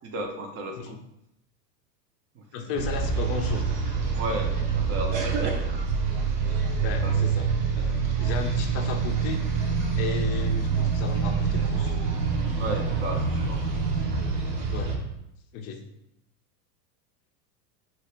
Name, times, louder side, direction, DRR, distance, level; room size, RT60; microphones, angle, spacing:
voice 1, 0.0-1.0 2.3-2.7 4.1-5.7 7.0-7.2 12.5-13.7, right 1 dB, 30° right, 3 dB, 0.6 m, -34 dB
voice 2, 2.5-3.8 6.8-7.9 8.2-9.4 9.9-11.9 14.7-14.9 15.5-15.8, left 5 dB, 30° left, 4 dB, 0.5 m, -34 dB
sound 1, 2.8-15.0, right 5 dB, 65° right, 0.9 m, -26 dB
2.9 x 2.8 x 3.2 m, 0.81 s
hypercardioid pair, 110°, 50 cm